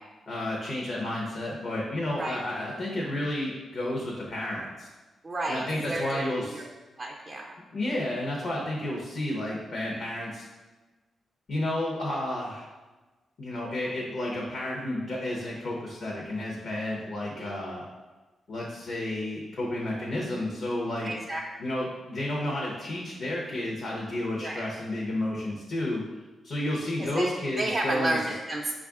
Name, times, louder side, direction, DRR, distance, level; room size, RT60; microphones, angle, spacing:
voice 1, 0.3-4.9 5.5-6.6 7.7-10.5 11.5-12.7 13.4-17.9 18.5-21.1 21.6-26.0 26.4-28.2, left 1 dB, 60° left, -3 dB, 0.7 m, -31 dB
voice 2, 5.2-6.2 6.5-6.7 7.0-7.6 17.4-17.6 21.0-21.4 24.4-24.6 27.0-27.3 27.6-28.7, right 1 dB, 35° right, -1 dB, 0.5 m, -31 dB
5.1 x 2.4 x 3.5 m, 1.2 s
cardioid pair, 90°, 0 cm